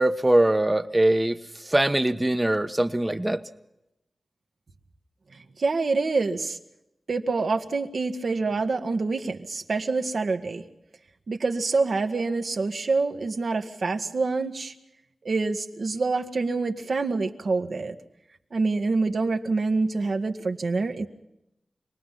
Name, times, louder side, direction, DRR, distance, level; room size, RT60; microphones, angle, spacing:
voice 1, 0.0-3.4, right 1 dB, 15° right, 8 dB, 1.2 m, -22 dB
voice 2, 5.6-6.6 7.1-10.6 11.3-14.7 15.2-18.0 18.5-21.1, right 3 dB, 65° right, 5 dB, 1.7 m, -26 dB
27.0 x 20.0 x 5.8 m, 0.87 s
wide cardioid pair, 90°, 0 cm